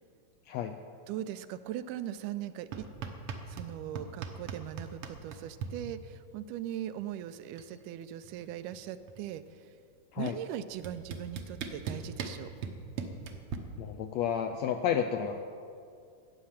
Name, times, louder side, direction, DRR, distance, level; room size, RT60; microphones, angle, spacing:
voice 1, 0.5-0.8 10.1-10.4 13.8-15.4, left 8 dB, 80° left, 5 dB, 1.5 m, -31 dB
voice 2, 1.1-2.9 3.5-9.7 10.2-12.5, right 11 dB, 85° right, 12 dB, 2.1 m, -40 dB
sound 1, 2.7-3.7 4.0-5.7 7.0-7.1 7.3-7.7 8.0-9.4 10.3-10.4 10.8-13.6, right 6 dB, 70° right, 1.4 m, -39 dB
13.5 x 9.0 x 7.3 m, 2.4 s
omnidirectional pair, 3.7 m